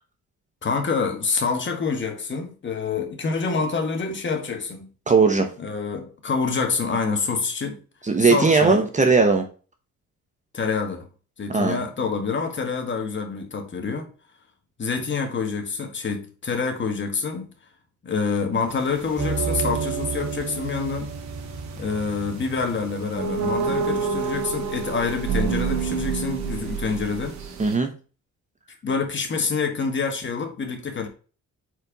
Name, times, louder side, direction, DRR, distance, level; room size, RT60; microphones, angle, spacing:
voice 1, 0.6-4.9 5.6-7.8 8.2-8.8 10.5-11.1 11.4-14.1 14.8-17.5 18.0-21.1 21.8-27.4 28.8-31.1, left 5 dB, 40° left, 1.7 m, -27 dB
voice 2, 5.1-5.5 8.0-9.5 11.5-11.8 27.6-27.9, right 4 dB, 25° right, 1.0 m, -18 dB
sound 1, 18.7-27.8, right 5 dB, 65° right, 1.4 m, -28 dB
4.7 x 4.3 x 5.1 m
cardioid pair, 90°, 30 cm